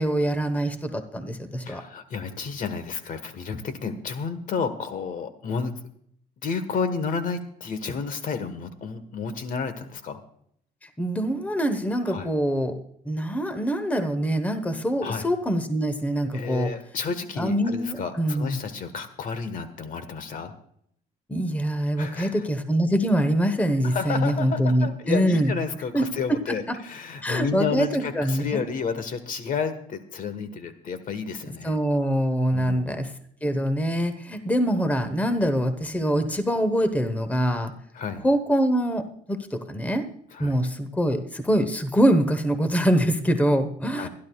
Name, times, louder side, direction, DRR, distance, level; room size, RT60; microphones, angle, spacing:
voice 1, 0.0-1.8 11.0-12.8 13.0-16.7 17.4-18.6 21.3-25.5 25.9-26.1 26.5-26.8 27.2-28.6 31.6-33.1 33.4-37.7 38.2-40.0 40.4-44.1, equal, 10° left, 9 dB, 1.0 m, -24 dB
voice 2, 1.6-5.7 6.4-10.2 12.1-12.3 15.0-15.3 16.3-20.5 22.0-22.4 23.8-31.8 32.5-32.8 37.9-38.2 40.3-40.6 43.9-44.1, left 5 dB, 55° left, 11 dB, 1.4 m, -31 dB
25.0 x 11.5 x 2.3 m, 0.67 s
cardioid pair, 110°, 17 cm